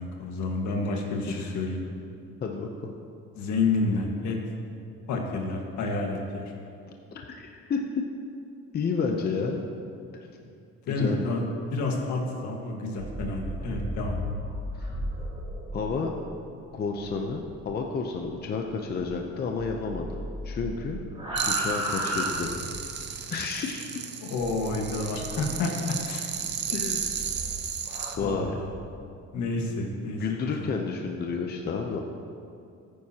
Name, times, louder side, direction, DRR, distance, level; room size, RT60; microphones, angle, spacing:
voice 1, 0.0-1.8 3.3-4.4 5.1-6.4 10.4-10.5 10.9-14.2 24.2-26.3 28.1-28.7 29.3-30.8, left 3 dB, 70° left, 1 dB, 1.7 m, -29 dB
voice 2, 2.4-2.9 7.3-8.0 8.7-9.6 10.9-11.2 14.8-14.9 15.7-16.1 16.7-20.2 20.4-21.0 21.5-22.5 23.3-23.9 26.7-27.1 28.2-28.6 30.2-32.0, left 5 dB, 35° left, 2 dB, 0.7 m, -30 dB
sound 1, 12.9-19.3 19.6-23.0 24.4-25.6 26.3-28.9, equal, 20° right, 2.4 m, -36 dB
sound 2, 21.4-28.2, right 7 dB, 35° right, 0.7 m, -34 dB
15.0 x 9.4 x 2.9 m, 2.5 s
cardioid pair, 150°, 29 cm